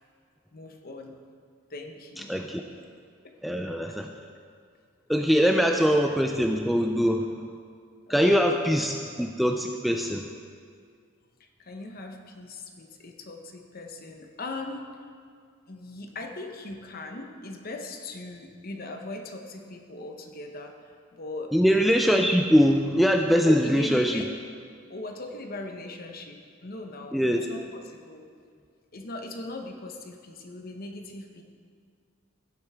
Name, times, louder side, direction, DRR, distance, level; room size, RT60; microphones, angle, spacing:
voice 1, 0.5-1.2 1.7-2.3 3.2-3.3 8.1-8.5 11.6-14.9 15.7-21.5 23.4-24.2 24.9-28.3 28.9-31.4, left 2 dB, 45° left, 4 dB, 0.9 m, -39 dB
voice 2, 2.2-2.6 3.4-4.1 5.1-7.3 8.1-10.3 21.5-24.2 27.1-27.5, equal, ahead, 3 dB, 0.3 m, -22 dB
16.0 x 7.6 x 3.6 m, 2.1 s
head